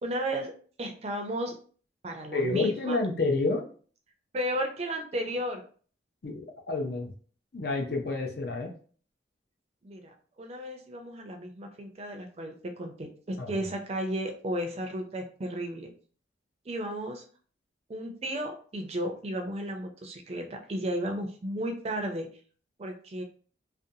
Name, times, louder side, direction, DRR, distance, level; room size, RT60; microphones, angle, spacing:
voice 1, 0.0-0.5 0.8-1.5 2.0-3.0 4.3-5.6 9.8-15.9 16.7-17.2 17.9-22.3 22.8-23.2, right 1 dB, 35° right, 4 dB, 0.4 m, -34 dB
voice 2, 2.3-3.6 6.2-7.1 7.5-8.7 13.4-13.6, left 3 dB, 60° left, 2 dB, 0.5 m, -29 dB
2.5 x 2.2 x 2.7 m, 0.43 s
head